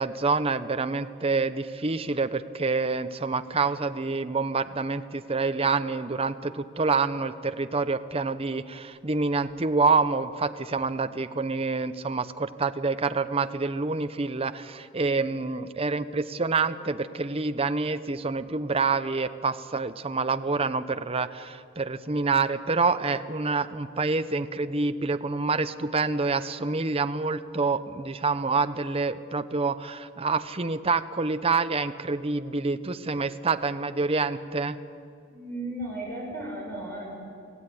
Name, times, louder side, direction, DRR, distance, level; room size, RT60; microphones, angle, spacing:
voice 1, 0.0-34.8, right 4 dB, 30° right, 10 dB, 0.8 m, -27 dB
voice 2, 35.3-37.1, right 1 dB, 10° left, -2 dB, 6.9 m, -35 dB
25.0 x 16.0 x 9.6 m, 2.5 s
head